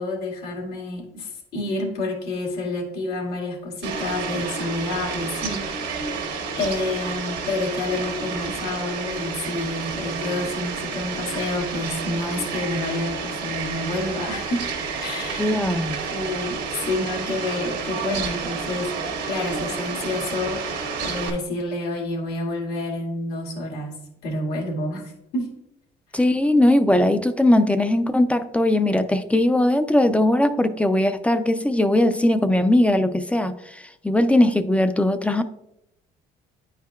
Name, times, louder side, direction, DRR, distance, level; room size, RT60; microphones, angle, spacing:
voice 1, 0.0-6.3 6.5-14.7 15.0-15.5 16.1-23.9 24.2-25.5, left 2 dB, 75° left, 2.0 m, -29 dB
Fowl, 3.8-21.3, right 5 dB, 90° right, 1.3 m, -30 dB
voice 2, 15.4-16.0 26.1-35.4, left 1 dB, 5° left, 0.3 m, -19 dB
9.4 x 4.6 x 2.3 m
cardioid pair, 110°, 17 cm